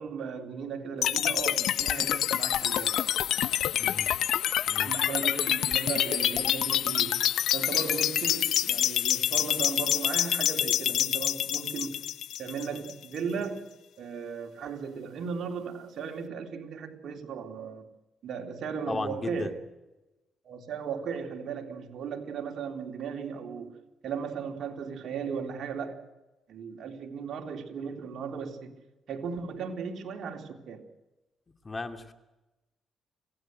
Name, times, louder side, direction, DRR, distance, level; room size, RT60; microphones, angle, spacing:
voice 1, 0.0-3.0 4.8-12.1 12.4-13.6 14.0-17.9 18.2-19.5 20.4-26.0 26.5-28.8 29.1-30.8, right 6 dB, 60° right, 3.5 m, -36 dB
sound 1, 1.0-13.0, left 11 dB, 80° left, 0.8 m, -27 dB
voice 2, 3.8-4.1 4.7-4.9 18.9-19.5 31.6-32.1, left 3 dB, 30° left, 2.6 m, -35 dB
27.0 x 17.0 x 7.9 m
cardioid pair, 90°, 0 cm